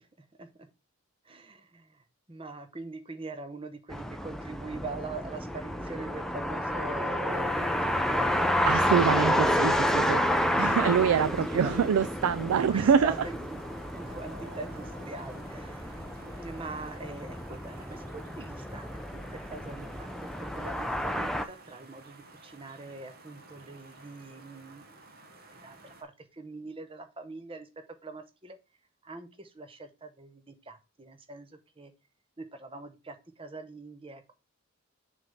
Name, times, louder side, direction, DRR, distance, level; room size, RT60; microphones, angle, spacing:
voice 1, 1.2-8.6 11.3-11.8 12.5-13.6 14.0-25.0 25.5-27.7 28.0-28.6 29.0-31.9 32.4-34.3, right 3 dB, 25° right, 0.8 m, -43 dB
sound 1, 3.9-21.5, equal, ahead, 0.4 m, -30 dB
sound 2, 7.3-26.0, right 2 dB, 45° right, 1.2 m, -52 dB
voice 2, 8.7-13.1, right 7 dB, 80° right, 0.4 m, -25 dB
6.8 x 3.5 x 5.4 m
head